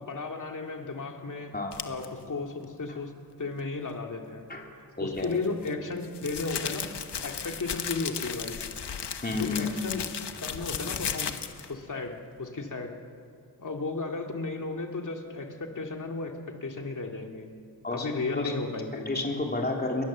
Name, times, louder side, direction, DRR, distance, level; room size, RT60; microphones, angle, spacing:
voice 1, 0.0-1.5 1.8-3.1 3.4-4.5 5.0-6.9 7.2-8.6 9.3-10.0 10.4-11.4 11.7-13.0 13.6-17.5 17.9-19.1, left 3 dB, 50° left, 3 dB, 2.5 m, -34 dB
sound 1, 1.7-2.1 5.2-11.7, left 7 dB, 90° left, 1.3 m, -35 dB
voice 2, 4.5-5.3 9.2-9.7 17.8-18.1 18.3-18.5 19.1-20.0, left 3 dB, 25° left, 0 dB, 3.5 m, -31 dB
29.0 x 22.0 x 7.5 m, 2.4 s
wide cardioid pair, 130°, 40 cm